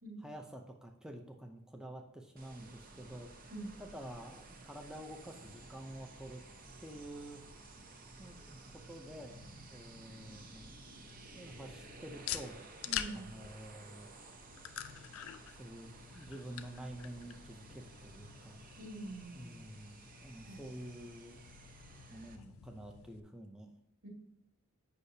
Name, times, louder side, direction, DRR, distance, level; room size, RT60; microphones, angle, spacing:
voice 1, 0.2-3.5 3.8-6.4 6.8-7.4 8.2-9.4 9.7-10.7 11.3-12.6 13.1-14.1 15.6-18.6 19.3-21.4 22.1-23.7, right 1 dB, 5° right, 2 dB, 0.5 m, -49 dB
sound 1, 2.4-22.4, right 3 dB, 40° right, 0.8 m, -55 dB
sound 2, 9.0-23.2, left 10 dB, 75° left, 0.4 m, -48 dB
voice 2, 12.9-13.3 18.8-19.6 20.5-20.6 24.0-24.1, right 1 dB, 80° right, -3 dB, 2.4 m, -45 dB
8.2 x 5.5 x 2.7 m, 0.78 s
head